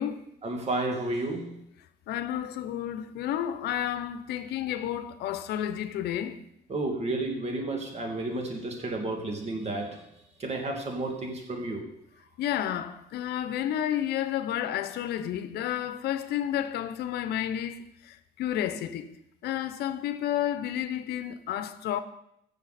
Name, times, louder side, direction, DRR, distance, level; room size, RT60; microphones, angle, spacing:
voice 1, 0.4-1.6 6.7-10.0 10.4-11.9, right 2 dB, 40° right, 2.5 m, -31 dB
voice 2, 2.1-6.4 12.4-19.1 19.4-22.0, left 11 dB, 75° left, 0.8 m, -31 dB
15.5 x 6.7 x 4.2 m
cardioid pair, 110°, 17 cm